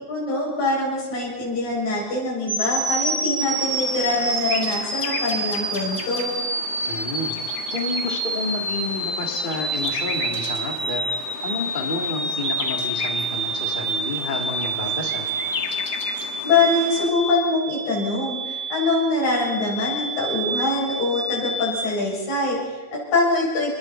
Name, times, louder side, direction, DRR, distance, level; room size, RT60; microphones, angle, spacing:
voice 1, 0.1-6.3 16.4-23.8, left 2 dB, 65° left, -4 dB, 8.9 m, -24 dB
sound 1, 2.5-21.8, right 2 dB, 20° right, 1.7 m, -28 dB
sound 2, 3.4-17.1, left 4 dB, 45° left, 1.3 m, -35 dB
voice 2, 6.9-7.3 7.7-11.0 11.4-15.3, left 3 dB, 25° left, 2 dB, 1.1 m, -30 dB
28.5 x 22.0 x 4.4 m, 1.3 s
omnidirectional pair, 4.4 m